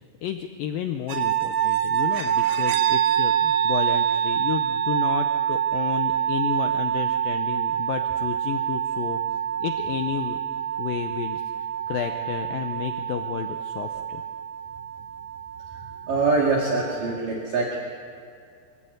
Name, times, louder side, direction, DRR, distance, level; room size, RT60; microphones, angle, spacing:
voice 1, 0.2-9.2 9.6-10.4 10.8-11.4 11.9-14.2, left 10 dB, 85° left, 7 dB, 2.0 m, -31 dB
sound 1, 1.1-17.1, right 10 dB, 75° right, 3.8 m, -26 dB
voice 2, 16.0-17.8, right 3 dB, 55° right, -2 dB, 3.3 m, -23 dB
24.5 x 15.0 x 8.0 m, 2.4 s
omnidirectional pair, 5.1 m